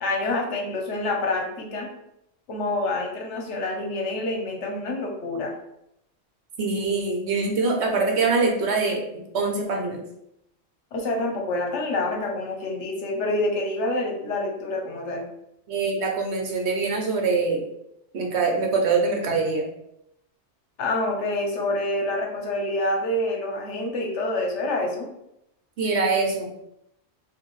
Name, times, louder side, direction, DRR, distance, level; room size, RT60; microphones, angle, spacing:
voice 1, 0.0-1.9 2.5-5.5 10.9-15.2 20.8-25.1, left 2 dB, 70° left, 1 dB, 1.1 m, -27 dB
voice 2, 6.6-9.0 9.3-10.0 15.7-17.6 18.1-19.7 25.8-26.5, right 4 dB, 65° right, 1 dB, 1.0 m, -24 dB
4.3 x 2.6 x 3.1 m, 0.80 s
omnidirectional pair, 1.3 m